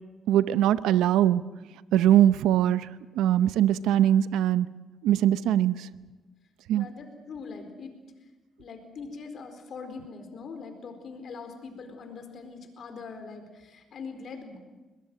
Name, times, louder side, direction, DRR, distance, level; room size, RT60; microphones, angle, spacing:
voice 1, 0.3-1.4 1.9-2.9 3.1-4.7 5.0-5.9 6.7-6.9, right 11 dB, 90° right, 15 dB, 0.7 m, -21 dB
voice 2, 6.7-8.0 8.6-14.6, left 4 dB, 60° left, 6 dB, 4.4 m, -42 dB
22.0 x 19.5 x 7.9 m, 1.2 s
cardioid pair, 90°, 0 cm